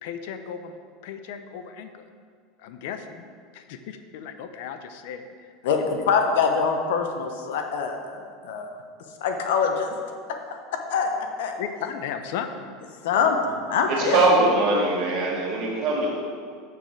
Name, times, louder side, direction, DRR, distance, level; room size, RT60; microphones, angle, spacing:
voice 1, 0.0-2.1 2.6-3.2 3.5-5.7 6.0-6.1 11.6-12.7, left 7 dB, 70° left, 8 dB, 0.6 m, -36 dB
voice 2, 5.6-8.7 9.2-9.9 10.3-10.4 10.9-11.1 11.4-11.5 13.0-14.2 14.7-14.8, left 5 dB, 85° left, 4 dB, 1.0 m, -24 dB
voice 3, 13.9-16.1, right 2 dB, 50° right, -3 dB, 2.1 m, -22 dB
7.6 x 6.8 x 4.7 m, 2.1 s
supercardioid pair, 155°, 0 cm